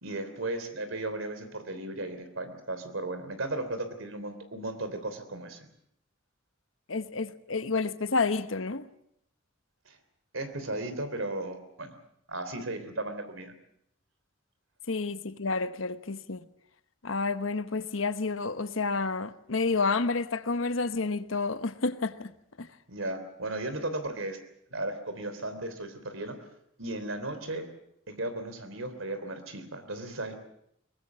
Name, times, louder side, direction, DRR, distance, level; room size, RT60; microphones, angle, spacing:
voice 1, 0.0-5.7 9.9-10.0 10.3-11.9 12.3-13.5 22.9-24.4 24.7-26.4 26.8-27.6 28.1-30.3, right 2 dB, 85° right, 3.4 m, -35 dB
voice 2, 6.9-8.9 14.9-16.4 17.0-22.3 22.6-22.7, left 4 dB, 80° left, 1.1 m, -30 dB
22.5 x 20.0 x 7.5 m
head